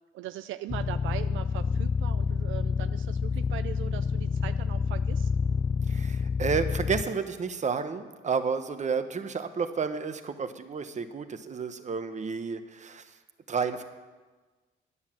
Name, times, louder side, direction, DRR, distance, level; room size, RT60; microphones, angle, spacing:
voice 1, 0.1-5.3, right 13 dB, 80° right, 10 dB, 0.4 m, -40 dB
sound 1, 0.7-7.0, left 5 dB, 25° left, 0.4 m, -28 dB
voice 2, 5.9-13.1 13.5-13.8, right 5 dB, 35° right, 9 dB, 1.1 m, -31 dB
10.5 x 9.6 x 7.4 m, 1.3 s
cardioid pair, 90°, 20 cm